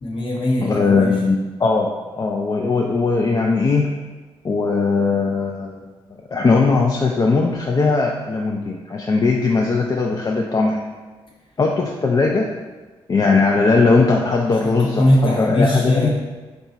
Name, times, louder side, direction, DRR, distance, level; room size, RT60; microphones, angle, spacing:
voice 1, 0.0-1.1 14.6-16.1, left 1 dB, 55° left, -3 dB, 1.0 m, -20 dB
voice 2, 0.6-3.9 4.4-5.8 6.3-10.8 11.6-12.5 13.1-16.1, left 4 dB, 35° left, 0 dB, 0.4 m, -19 dB
3.8 x 2.3 x 4.1 m, 1.3 s
cardioid pair, 75°, 11 cm